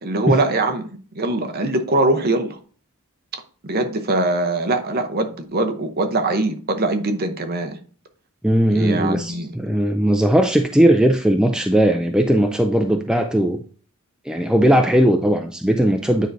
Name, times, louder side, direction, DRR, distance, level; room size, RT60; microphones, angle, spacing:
voice 1, 0.0-2.6 3.6-7.8 8.7-9.5, right 2 dB, 45° right, 0.8 m, -22 dB
voice 2, 8.4-13.6 14.3-16.3, right 1 dB, 5° right, 0.3 m, -18 dB
9.1 x 4.6 x 2.6 m
head